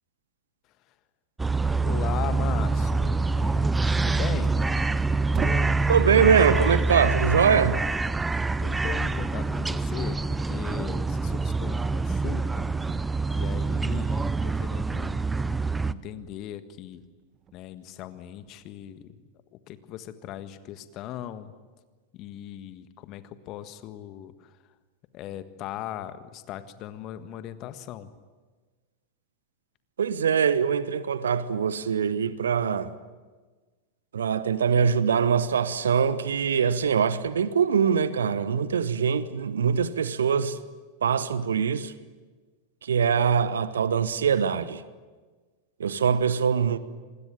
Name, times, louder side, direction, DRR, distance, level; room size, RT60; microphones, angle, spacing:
sound 1, 1.4-15.9, right 3 dB, 10° right, 0.7 m, -26 dB
voice 1, 1.6-5.0 5.3-6.0 8.6-12.8 13.3-15.2 15.8-17.0 17.5-19.2 19.5-21.5 22.1-24.5 25.1-28.1, left 11 dB, 40° left, 1.6 m, -39 dB
sound 2, 3.8-5.8 6.4-9.8 10.1-13.9 14.2-16.5 16.9-17.7 18.4-18.6, right 8 dB, 25° right, 1.3 m, -42 dB
voice 2, 5.9-7.8 30.0-32.9 34.1-40.6 41.0-41.9 42.8-44.8 45.8-46.8, right 7 dB, 65° right, 1.2 m, -23 dB
27.0 x 21.0 x 9.0 m
figure-of-eight pair, 90°, 0 cm